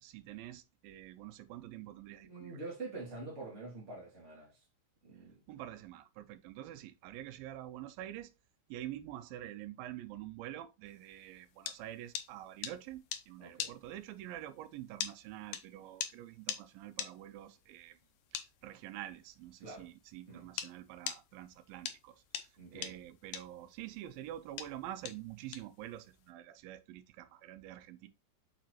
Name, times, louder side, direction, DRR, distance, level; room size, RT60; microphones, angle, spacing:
voice 1, 0.0-2.6 5.5-8.3 8.7-18.0 18.3-28.1, right 13 dB, 90° right, 2.4 m, -47 dB
voice 2, 2.2-4.6 5.0-5.4 13.4-13.7 19.6-19.9 20.3-20.5 22.6-23.0, right 3 dB, 25° right, 2.1 m, -46 dB
sound 1, 11.1-20.7 21.1-26.3, left 9 dB, 80° left, 2.4 m, -42 dB
7.5 x 5.0 x 2.9 m
omnidirectional pair, 4.1 m